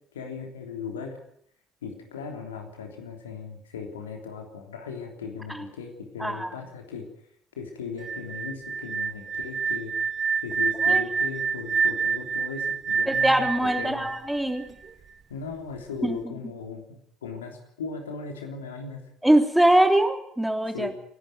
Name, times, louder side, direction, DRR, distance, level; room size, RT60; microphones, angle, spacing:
voice 1, 0.1-1.2 1.8-7.1 7.6-9.9 10.4-14.1 15.3-16.8 17.2-19.0 20.7-20.9, left 5 dB, 80° left, 3 dB, 3.4 m, -37 dB
voice 2, 6.2-6.5 10.8-11.0 13.1-14.6 16.0-16.2 19.2-20.9, right 1 dB, 5° right, 6 dB, 3.2 m, -22 dB
sound 1, 8.0-14.9, right 5 dB, 40° right, 2.6 m, -27 dB
28.0 x 11.5 x 9.3 m, 0.69 s
figure-of-eight pair, 55°, 0 cm